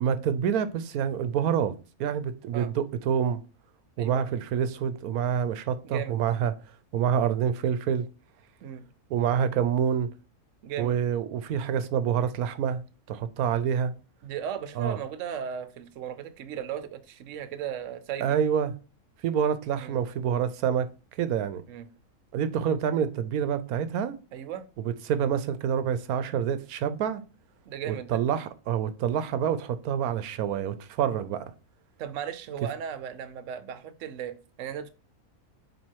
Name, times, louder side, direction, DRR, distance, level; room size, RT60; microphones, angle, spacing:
voice 1, 0.0-1.7 2.0-3.4 4.0-6.5 6.9-8.1 9.1-10.1 10.8-13.9 14.8-15.0 18.2-18.7 19.2-20.9 21.2-21.6 22.3-24.2 24.8-27.2 27.9-31.4, right 8 dB, 85° right, 1.1 m, -27 dB
voice 2, 5.8-6.2 8.6-8.8 10.6-11.0 14.2-18.3 19.8-20.0 21.7-21.9 24.3-24.6 27.7-28.2 32.0-34.9, right 9 dB, 65° right, 1.0 m, -36 dB
7.3 x 3.0 x 4.5 m
omnidirectional pair, 1.5 m